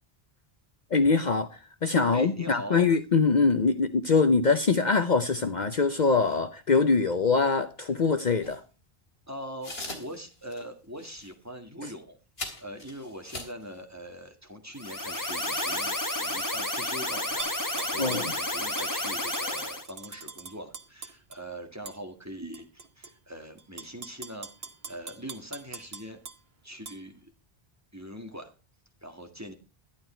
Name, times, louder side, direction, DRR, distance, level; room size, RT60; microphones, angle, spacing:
voice 1, 0.9-8.6 11.8-11.9 18.0-18.2, left 4 dB, 50° left, 0.9 m, -23 dB
voice 2, 2.1-2.9 9.3-12.2 12.6-26.2 26.6-27.3 27.9-28.5 29.0-29.5, equal, 15° right, 1.9 m, -42 dB
sound 1, 8.4-8.6 9.6-10.2 10.5-10.6 11.0-11.3 12.4-13.6, left 2 dB, 75° left, 3.2 m, -39 dB
sound 2, 14.8-19.9, left 1 dB, 20° left, 1.1 m, -31 dB
Tap / Glass, 17.4-18.3 18.8-21.4 21.9-22.0 22.5-23.1 23.6-26.4 26.9-27.0, right 5 dB, 70° right, 1.5 m, -42 dB
11.5 x 11.0 x 4.4 m
omnidirectional pair, 1.0 m